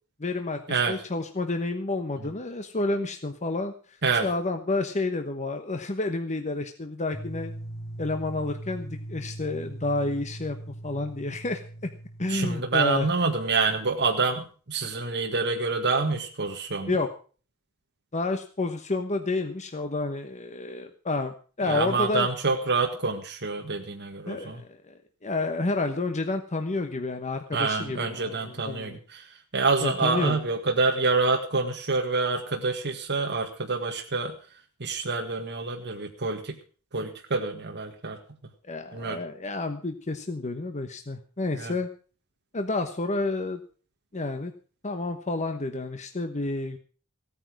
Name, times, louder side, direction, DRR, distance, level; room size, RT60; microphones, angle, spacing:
voice 1, 0.2-3.7 4.2-7.5 8.0-10.6 10.8-11.9 12.2-13.1 16.9-17.1 18.1-22.3 24.3-24.9 25.2-29.0 29.8-30.4 38.7-41.9 42.5-43.6 44.1-44.5 44.8-46.8, left 2 dB, 35° left, 6 dB, 1.1 m, -30 dB
sound 1, 7.1-13.0, right 1 dB, 15° left, 2.3 m, -40 dB
voice 2, 12.3-16.9 21.6-24.6 27.5-34.3 34.8-36.6 36.9-38.2 38.9-39.2 41.6-41.7, right 4 dB, 50° right, 2 dB, 1.8 m, -27 dB
16.5 x 9.3 x 6.2 m, 0.40 s
head